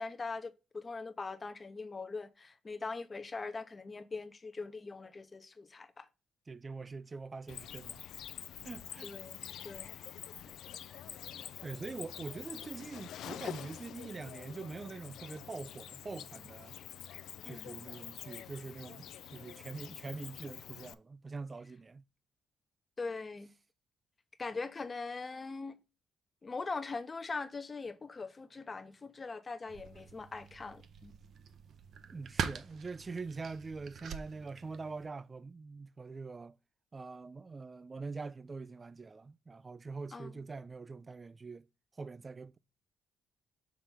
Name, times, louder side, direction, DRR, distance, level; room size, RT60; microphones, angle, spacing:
voice 1, 0.0-6.1 9.0-9.9 17.4-17.7 23.0-23.5 24.4-25.8 26.4-31.1 40.1-40.4, left 4 dB, 30° left, 0.7 m, -41 dB
voice 2, 6.5-8.0 8.6-9.1 11.6-16.8 17.4-22.0 32.1-36.6 36.9-41.7 41.9-42.6, right 4 dB, 30° right, 0.3 m, -44 dB
Cricket, 7.5-20.9, left 10 dB, 75° left, 0.4 m, -47 dB
sound 1, 29.7-35.1, right 7 dB, 65° right, 0.6 m, -43 dB
5.6 x 3.4 x 5.8 m
cardioid pair, 90°, 0 cm